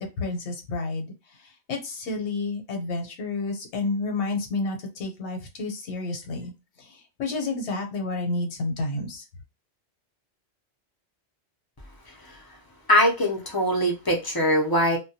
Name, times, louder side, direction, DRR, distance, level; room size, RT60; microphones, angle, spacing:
voice 1, 0.0-6.5 6.8-9.2, left 3 dB, 75° left, 3 dB, 1.0 m, -30 dB
voice 2, 12.1-12.4 12.9-15.0, equal, 30° left, 0 dB, 0.4 m, -22 dB
2.2 x 2.2 x 2.6 m, 0.26 s
omnidirectional pair, 1.2 m